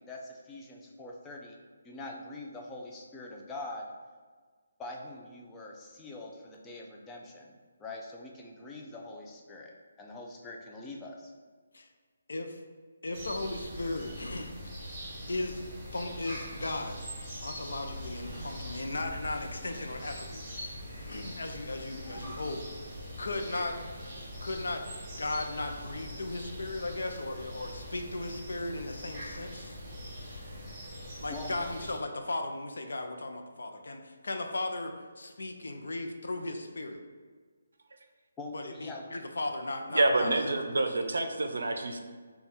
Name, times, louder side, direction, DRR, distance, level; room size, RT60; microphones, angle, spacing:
voice 1, 0.0-1.6 1.8-3.9 4.8-11.3 31.3-31.7 38.4-39.2, left 2 dB, 10° left, -1 dB, 0.3 m, -44 dB
voice 2, 12.3-12.6 13.0-14.7 15.3-15.6 15.9-17.0 17.4-20.4 21.0-22.7 23.2-23.8 24.4-24.8 25.2-29.8 31.2-37.0 38.5-40.3 40.7-40.9, left 2 dB, 80° left, 5 dB, 0.5 m, -36 dB
sound 1, 13.1-32.0, equal, 15° right, 1.1 m, -42 dB
voice 3, 39.9-42.0, right 2 dB, 80° right, 6 dB, 0.5 m, -27 dB
3.4 x 2.3 x 4.2 m, 1.5 s
hypercardioid pair, 165°, 0 cm